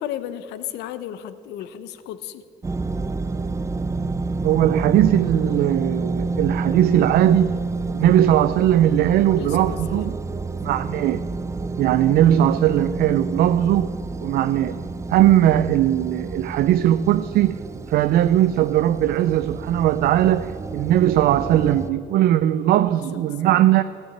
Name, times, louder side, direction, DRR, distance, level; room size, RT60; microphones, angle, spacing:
voice 1, 0.0-2.4 9.4-10.2 22.9-23.6, left 11 dB, 85° left, 13 dB, 0.7 m, -34 dB
sound 1, 2.6-21.9, right 3 dB, 15° right, 0.5 m, -29 dB
voice 2, 4.4-7.5 7.9-10.2 10.6-11.2 11.8-13.9 14.2-14.8 15.1-17.6 17.9-23.8, right 12 dB, 65° right, 12 dB, 0.4 m, -19 dB
14.5 x 6.8 x 8.8 m, 2.4 s
cardioid pair, 110°, 17 cm